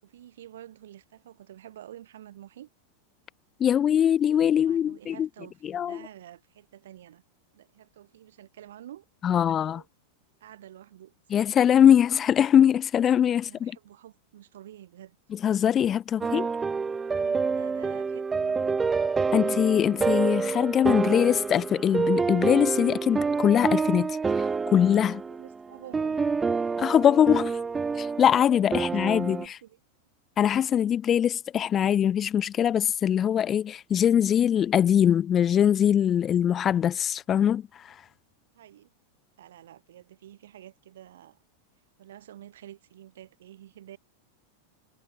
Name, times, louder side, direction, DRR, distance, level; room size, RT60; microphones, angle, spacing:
voice 1, 0.0-2.7 4.6-7.2 7.5-9.9 10.4-11.1 13.4-15.2 17.1-18.8 25.1-26.4 29.3-29.8 38.5-38.9 39.4-41.4 42.0-44.0, right 12 dB, 60° right, 6.2 m, -49 dB
voice 2, 3.6-5.3 5.6-6.0 9.2-9.8 11.3-13.7 15.3-16.5 19.3-25.2 26.8-27.6 28.0-29.6 30.4-38.0, left 9 dB, 25° left, 0.7 m, -22 dB
sound 1, 16.2-29.5, right 5 dB, 15° right, 0.7 m, -28 dB
figure-of-eight pair, 90°, 0 cm